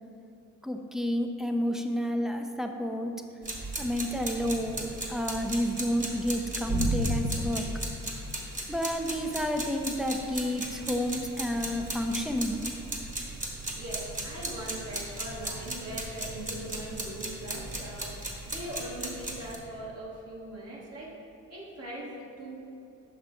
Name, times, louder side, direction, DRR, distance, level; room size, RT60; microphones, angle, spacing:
voice 1, 0.6-3.1 3.8-7.7 8.7-12.6, equal, ahead, 4 dB, 0.5 m, -30 dB
sound 1, 3.4-19.6, right 1 dB, 25° right, 1.4 m, -35 dB
voice 2, 13.7-21.1 21.5-22.6, right 1 dB, 55° right, -4 dB, 1.6 m, -40 dB
6.0 x 5.9 x 4.4 m, 2.8 s
cardioid pair, 90°, 30 cm